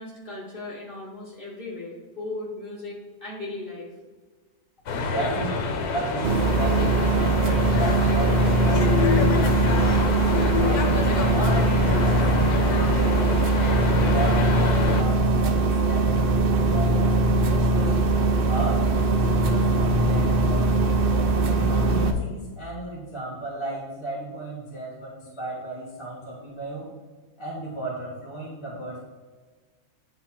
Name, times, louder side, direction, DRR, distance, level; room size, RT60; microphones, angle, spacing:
voice 1, 0.0-3.9, left 2 dB, 35° left, -5 dB, 2.1 m, -37 dB
sound 1, 4.9-15.0, left 5 dB, 85° left, 1.4 m, -27 dB
voice 2, 4.9-5.6 5.9-8.9 9.3-9.9 10.3-18.0 18.4-20.8 21.5-26.9 27.4-29.0, right 2 dB, 20° left, -5 dB, 1.5 m, -34 dB
sound 2, 6.2-22.1, right 2 dB, 55° right, 0.6 m, -21 dB
9.3 x 4.3 x 4.4 m, 1.4 s
omnidirectional pair, 1.6 m